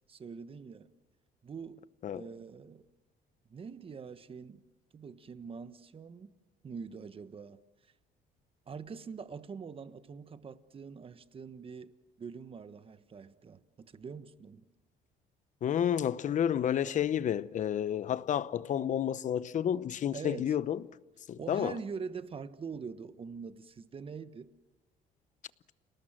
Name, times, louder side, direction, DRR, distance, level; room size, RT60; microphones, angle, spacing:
voice 1, 0.1-0.9 1.4-2.9 3.5-4.6 4.9-6.3 6.6-7.6 8.7-11.9 12.2-14.7 20.1-20.6 21.4-24.5, right 5 dB, 35° right, 1.3 m, -44 dB
voice 2, 15.6-20.8 21.3-21.7, left 9 dB, 45° left, 0.8 m, -30 dB
29.5 x 19.0 x 7.6 m
cardioid pair, 110°, 17 cm